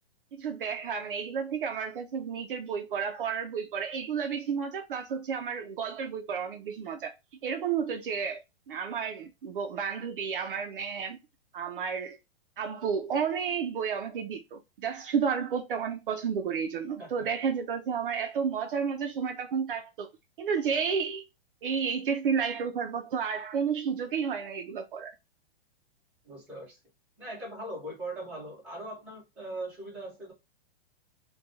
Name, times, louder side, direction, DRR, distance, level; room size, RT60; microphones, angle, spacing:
voice 1, 0.3-7.1 7.4-8.4 8.7-11.2 11.5-12.2 12.6-20.1 20.4-21.3 21.6-25.1, right 6 dB, 55° right, 0.5 m, -31 dB
voice 2, 26.2-26.8 27.2-30.3, right 1 dB, 5° right, 0.9 m, -40 dB
2.4 x 2.3 x 4.0 m
hypercardioid pair, 180°, 31 cm